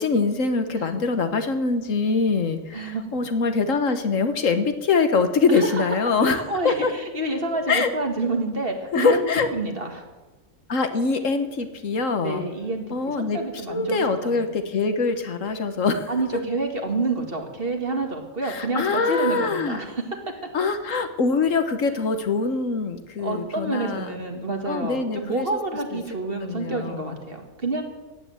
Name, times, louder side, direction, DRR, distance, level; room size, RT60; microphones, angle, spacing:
voice 1, 0.0-6.9 7.7-7.9 8.9-9.5 10.7-12.4 12.9-13.4 13.7-16.1 18.4-19.8 20.5-24.1 24.7-25.5 25.9-26.0 26.4-27.2, left 4 dB, 70° left, 8 dB, 1.6 m, -23 dB
voice 2, 2.7-3.3 5.5-5.9 6.2-10.0 12.2-14.5 16.1-20.0 23.2-27.8, right 2 dB, 45° right, 4 dB, 2.2 m, -28 dB
15.0 x 9.8 x 7.9 m, 1.2 s
omnidirectional pair, 1.4 m